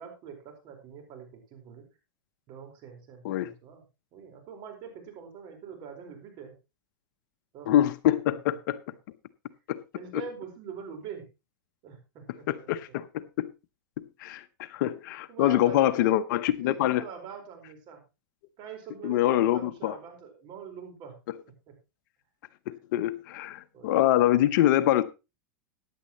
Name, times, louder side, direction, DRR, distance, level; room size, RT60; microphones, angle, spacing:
voice 1, 0.0-1.8 2.5-3.8 4.1-6.5 7.5-7.7 8.0-8.1 9.9-11.2 11.8-12.7 14.7-14.8 15.3-16.1 16.6-18.0 18.6-21.1 21.7-21.8 23.7-24.0, right 7 dB, 45° right, 4.6 m, -44 dB
voice 2, 7.7-8.8 9.7-9.8 10.1-10.2 12.5-13.5 14.2-17.0 19.0-19.9 22.9-25.0, left 13 dB, 65° left, 0.8 m, -25 dB
15.0 x 10.0 x 3.0 m
hypercardioid pair, 120°, 11 cm